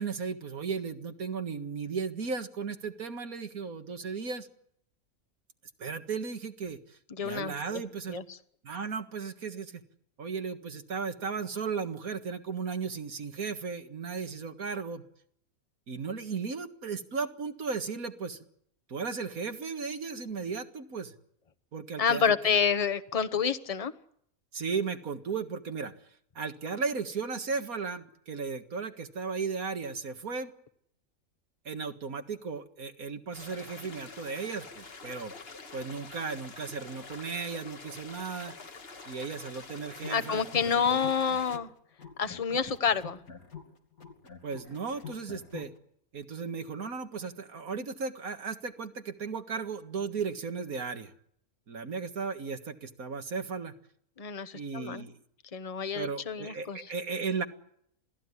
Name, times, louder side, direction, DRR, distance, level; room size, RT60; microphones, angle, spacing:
voice 1, 0.0-4.5 5.8-8.2 8.6-9.8 10.2-15.0 15.9-18.5 18.9-21.1 21.7-22.6 24.5-25.9 26.4-30.5 31.7-35.3 35.7-38.6 39.1-40.5 40.7-41.0 44.4-45.7 46.1-51.1 51.7-53.7 54.5-55.2 55.9-57.5, right 5 dB, 80° right, 7 dB, 2.2 m, -35 dB
voice 2, 7.2-7.8 8.1-8.2 22.0-23.9 40.1-41.7 42.2-43.2 54.2-55.0 55.5-56.8, left 6 dB, 25° left, 12 dB, 1.1 m, -28 dB
sound 1, 33.3-41.6, left 4 dB, 45° left, 1.7 m, -47 dB
sound 2, 39.9-41.7 42.0-45.7, left 6 dB, 75° left, 3.2 m, -46 dB
27.0 x 17.5 x 9.8 m, 0.70 s
omnidirectional pair, 1.5 m